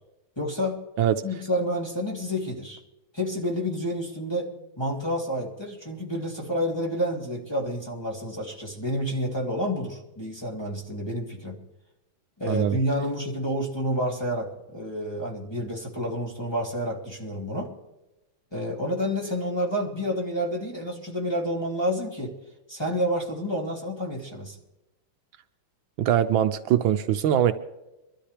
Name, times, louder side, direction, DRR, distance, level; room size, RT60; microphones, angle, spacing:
voice 1, 0.4-0.8 1.2-2.8 3.1-11.6 12.4-17.7 18.5-22.3 22.7-24.5, equal, 10° left, -1 dB, 2.7 m, -29 dB
voice 2, 12.5-12.8 26.0-27.5, right 10 dB, 75° right, 9 dB, 1.4 m, -22 dB
24.5 x 13.0 x 3.3 m, 0.97 s
omnidirectional pair, 2.2 m